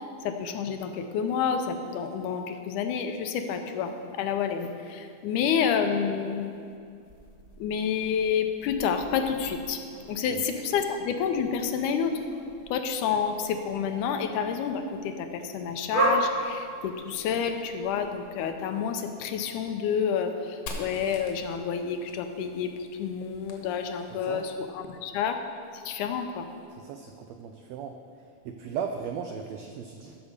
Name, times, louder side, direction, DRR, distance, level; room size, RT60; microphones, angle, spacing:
voice 1, 0.0-6.5 7.6-9.8 10.1-12.2 12.7-22.7 23.0-25.4 25.7-26.5, left 7 dB, 80° left, 6 dB, 2.2 m, -29 dB
sound 1, 6.2-18.5, right 2 dB, 45° right, 1.1 m, -36 dB
Fire, 20.7-24.3, left 2 dB, 65° left, 2.3 m, -44 dB
voice 2, 24.1-24.4 26.7-28.0 28.4-30.2, right 7 dB, 90° right, 5 dB, 1.5 m, -37 dB
14.0 x 5.0 x 6.5 m, 2.4 s
omnidirectional pair, 3.6 m